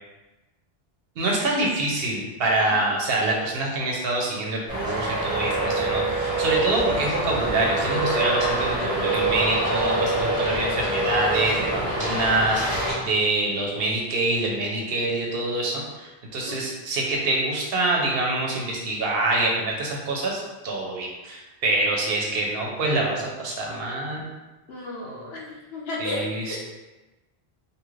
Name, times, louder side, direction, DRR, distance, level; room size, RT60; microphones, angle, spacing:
voice 1, 1.2-24.2 26.0-26.6, right 2 dB, 70° right, -2 dB, 0.8 m, -26 dB
Traffic noise roadway noise, 4.7-12.9, right 2 dB, 5° right, 1.1 m, -25 dB
voice 2, 9.4-10.1 16.5-16.6 24.7-26.6, left 1 dB, 75° left, -3 dB, 0.9 m, -35 dB
2.8 x 2.4 x 3.1 m, 1.1 s
omnidirectional pair, 1.1 m